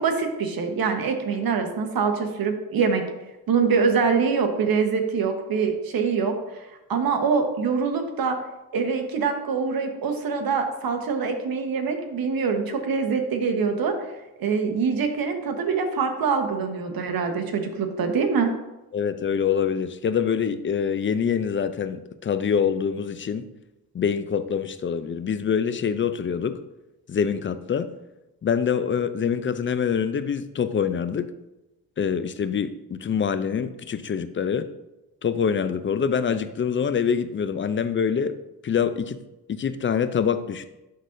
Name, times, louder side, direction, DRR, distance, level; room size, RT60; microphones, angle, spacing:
voice 1, 0.0-3.0 3.5-6.3 6.9-8.4 8.7-13.9 14.4-18.5, right 5 dB, 55° right, 4 dB, 1.3 m, -24 dB
voice 2, 18.9-23.5 23.9-26.6 27.1-27.9 28.4-31.3 32.0-34.7 35.2-38.4 38.6-39.2 39.5-40.7, left 7 dB, 30° left, 12 dB, 0.5 m, -25 dB
11.5 x 3.9 x 2.6 m, 0.98 s
supercardioid pair, 70°, 42 cm